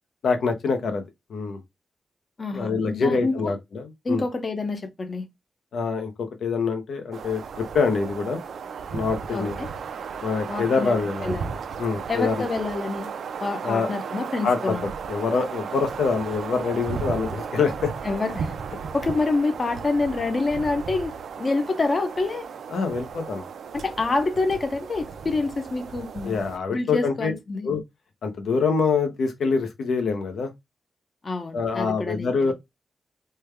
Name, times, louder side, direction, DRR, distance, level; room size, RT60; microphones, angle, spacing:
voice 1, 0.2-1.0 1.3-1.6 2.5-4.2 5.7-8.4 8.9-9.6 10.2-11.3 11.8-12.4 13.6-13.9 14.4-14.7 15.1-17.9 22.7-23.4 26.2-27.3 27.6-27.8 28.2-30.5 31.5-32.5, left 5 dB, 80° left, 0.7 m, -25 dB
voice 2, 2.4-3.5 4.0-5.2 9.3-9.7 10.5-11.0 11.2-11.5 12.1-13.1 13.4-14.8 18.0-18.5 18.9-22.5 23.7-26.4 26.7-27.7 31.2-32.5, left 3 dB, 30° left, 0.6 m, -27 dB
sound 1, 7.1-26.6, right 6 dB, 75° right, 0.4 m, -35 dB
3.3 x 2.2 x 3.2 m
wide cardioid pair, 175°, 0 cm